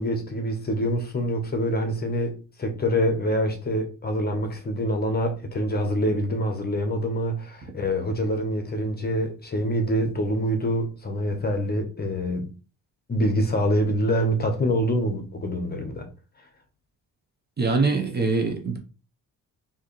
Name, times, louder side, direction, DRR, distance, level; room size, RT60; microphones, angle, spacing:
voice 1, 0.0-12.5 13.1-16.1, equal, 25° left, 0.9 m, -25 dB
voice 2, 17.6-18.8, right 3 dB, 30° right, 0.9 m, -23 dB
4.6 x 2.9 x 3.1 m
cardioid pair, 105°, 35 cm